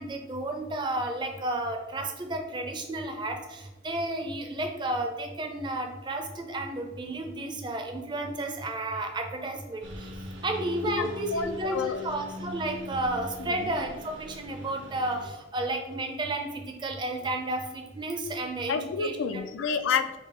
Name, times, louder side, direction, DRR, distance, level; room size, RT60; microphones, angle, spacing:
voice 1, 0.0-9.8 10.4-19.2, right 1 dB, 25° right, 4 dB, 0.4 m, -32 dB
Engine, 9.8-15.3, left 1 dB, 70° right, 0.6 m, -42 dB
voice 2, 10.8-12.0 13.4-13.7 18.7-20.2, left 6 dB, 90° left, 10 dB, 0.3 m, -30 dB
3.3 x 2.8 x 4.3 m, 1.1 s
head